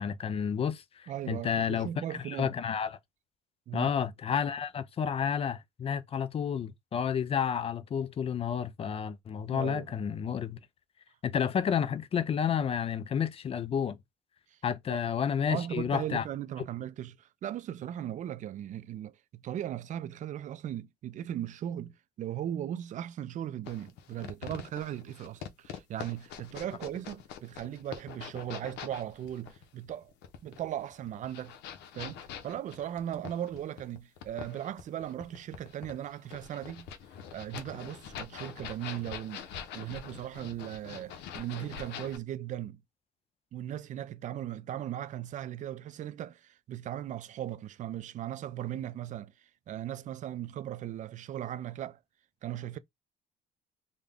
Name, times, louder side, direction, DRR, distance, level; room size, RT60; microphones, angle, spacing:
voice 1, 0.0-3.0 3.7-10.6 11.2-14.0 14.6-16.2, left 7 dB, 35° left, 0.5 m, -31 dB
voice 2, 1.1-2.5 3.7-3.9 9.5-9.9 14.5-14.6 14.9-15.0 15.5-21.9 22.2-30.1 30.4-31.6 31.9-32.2 32.4-36.9 37.3-42.8 43.5-49.3 49.7-52.0 52.4-52.8, right 11 dB, 45° right, 0.4 m, -38 dB
sound 1, 23.7-42.2, left 8 dB, 85° left, 0.7 m, -44 dB
3.7 x 2.2 x 3.4 m
cardioid pair, 110°, 17 cm